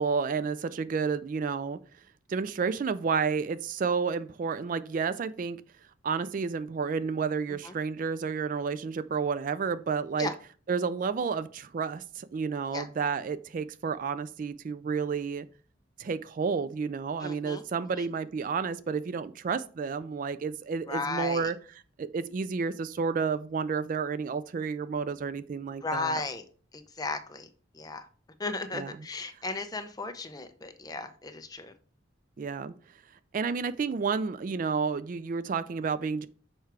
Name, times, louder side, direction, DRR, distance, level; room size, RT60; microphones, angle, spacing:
voice 1, 0.0-1.8 2.3-5.6 6.0-10.3 10.7-15.5 16.0-21.6 22.0-26.2 28.7-28.9 32.4-32.7 33.3-36.3, right 5 dB, 45° right, 0.3 m, -31 dB
voice 2, 17.2-17.6 17.9-18.1 20.9-21.5 25.8-26.4 26.7-27.5 27.7-28.1 28.4-31.7, left 3 dB, 20° left, 0.6 m, -35 dB
6.5 x 4.6 x 4.7 m
head